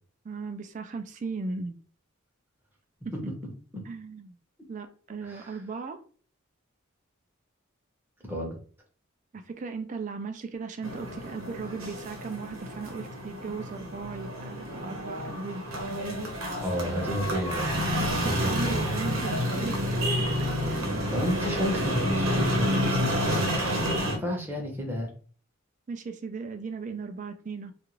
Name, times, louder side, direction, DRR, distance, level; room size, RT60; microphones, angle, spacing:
voice 1, 0.2-1.8 3.0-3.1 3.9-4.4 4.7-6.0 9.3-15.6 18.0-20.5 25.9-27.7, right 4 dB, 35° right, 7 dB, 0.3 m, -37 dB
sound 1, 10.8-24.2, equal, 85° right, 0.9 m, -29 dB
voice 2, 16.6-17.7 18.2-18.8 21.1-23.5 23.8-25.1, equal, 10° right, -1 dB, 0.7 m, -31 dB
2.4 x 2.4 x 3.0 m, 0.43 s
head